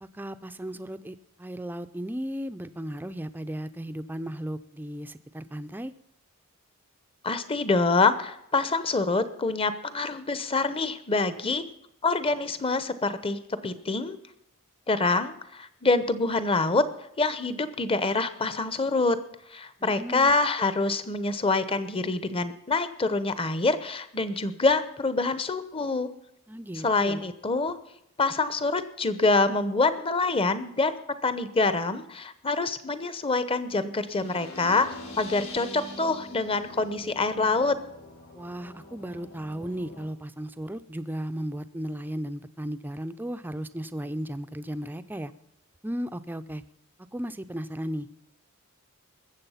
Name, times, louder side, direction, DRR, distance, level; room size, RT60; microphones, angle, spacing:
voice 1, 0.0-5.9 19.8-20.3 26.5-27.2 38.4-45.3 45.8-46.6 47.1-48.1, equal, 10° right, 10 dB, 0.5 m, -35 dB
voice 2, 7.2-11.6 12.0-14.2 14.9-16.8 17.2-19.2 19.5-26.1 26.7-27.8 28.2-31.0 31.2-34.9 35.2-37.8, left 3 dB, 25° left, 12 dB, 0.9 m, -26 dB
sound 1, 34.1-40.1, left 2 dB, 70° left, 4.0 m, -43 dB
20.5 x 7.5 x 5.7 m, 0.79 s
head